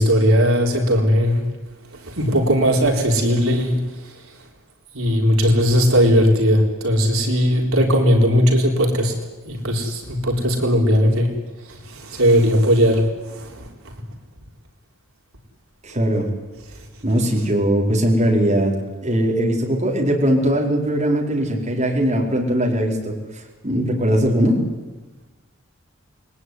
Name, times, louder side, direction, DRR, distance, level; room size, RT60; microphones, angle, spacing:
voice 1, 0.0-1.5 1.9-4.2 4.9-9.1 9.4-11.4 11.6-13.7, equal, 70° right, 1 dB, 4.4 m, -18 dB
voice 2, 15.8-16.3 17.0-18.7 19.0-23.2 23.6-24.6, equal, 30° right, -1 dB, 4.8 m, -20 dB
28.5 x 21.5 x 9.7 m, 1.2 s
head